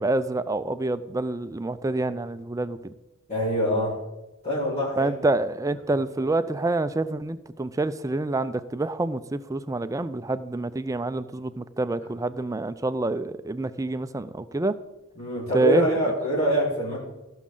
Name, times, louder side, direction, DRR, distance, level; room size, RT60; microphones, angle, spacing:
voice 1, 0.0-3.0 5.0-14.7 15.5-16.1, right 2 dB, 15° right, 12 dB, 0.4 m, -27 dB
voice 2, 3.3-4.0 4.4-5.1 15.2-17.0, right 1 dB, 35° left, -8 dB, 4.4 m, -24 dB
17.0 x 6.2 x 3.8 m, 1.0 s
head